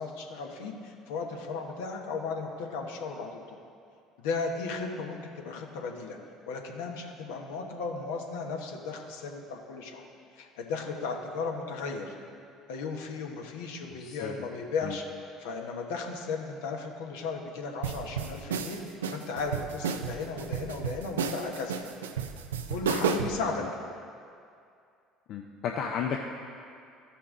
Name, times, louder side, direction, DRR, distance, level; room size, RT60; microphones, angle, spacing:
voice 1, 0.0-3.6 4.2-6.2 6.5-10.0 10.3-12.1 12.7-15.0 15.4-21.8 22.7-23.6, left 4 dB, 75° left, 1 dB, 1.2 m, -35 dB
voice 2, 14.0-14.3 14.8-15.0 25.3-26.2, left 7 dB, 60° left, 2 dB, 0.6 m, -33 dB
sound 1, 17.8-23.4, right 6 dB, 90° right, 0.5 m, -32 dB
14.5 x 5.7 x 3.7 m, 2.4 s
hypercardioid pair, 65°, 0 cm